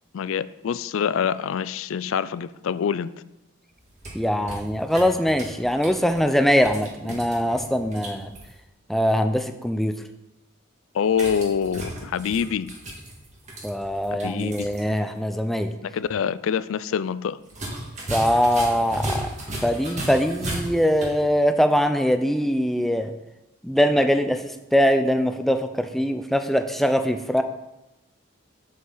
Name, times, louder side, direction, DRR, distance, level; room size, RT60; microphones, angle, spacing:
voice 1, 0.1-3.1 6.2-6.3 7.1-7.2 10.9-12.7 14.2-14.7 15.8-17.4, left 7 dB, 70° left, 16 dB, 0.3 m, -26 dB
sound 1, 3.8-8.5 11.1-14.8 15.1-15.2 17.5-21.2, right 1 dB, 35° right, 1.8 m, -35 dB
voice 2, 4.1-8.3 8.9-10.0 13.6-15.7 18.1-19.3 19.6-23.1 23.6-27.4, equal, ahead, 7 dB, 0.4 m, -22 dB
8.0 x 7.9 x 3.9 m, 0.97 s
head